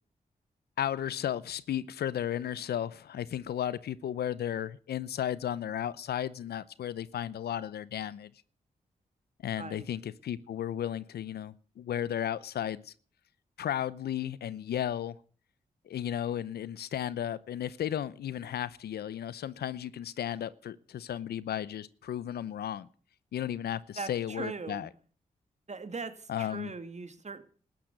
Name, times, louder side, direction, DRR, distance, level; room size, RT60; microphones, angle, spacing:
voice 1, 0.8-8.3 9.4-12.9 13.6-15.2 15.9-22.9 23.3-24.9 26.3-26.7, left 10 dB, 85° left, 0.7 m, -34 dB
voice 2, 24.0-24.9 25.7-27.4, right 4 dB, 45° right, 2.1 m, -40 dB
13.5 x 10.0 x 8.1 m
supercardioid pair, 45°, 16 cm